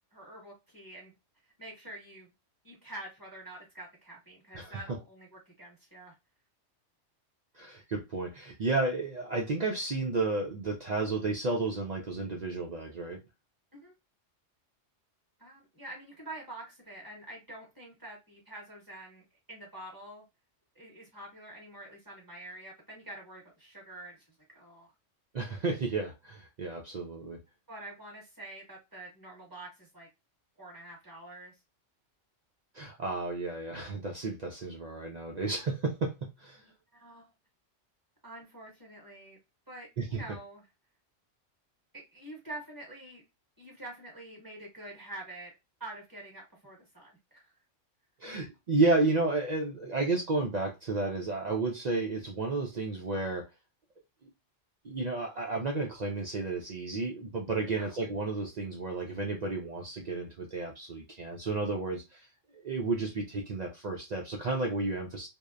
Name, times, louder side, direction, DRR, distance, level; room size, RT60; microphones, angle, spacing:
voice 1, 0.1-1.1 1.6-2.3 2.6-6.1 13.7-13.9 15.4-20.2 20.7-24.3 24.5-24.9 27.7-30.1 30.6-31.6 36.9-37.3 38.2-39.4 39.7-40.7 41.9-43.2 43.6-45.5 45.8-47.5 57.7-58.0, right 1 dB, 15° right, -3 dB, 1.2 m, -46 dB
voice 2, 7.6-13.2 25.3-27.4 32.7-36.6 40.0-40.2 48.2-53.5 54.8-62.3 62.6-65.3, right 3 dB, 70° right, 1 dB, 0.4 m, -32 dB
2.7 x 2.0 x 2.3 m, 0.24 s
omnidirectional pair, 1.3 m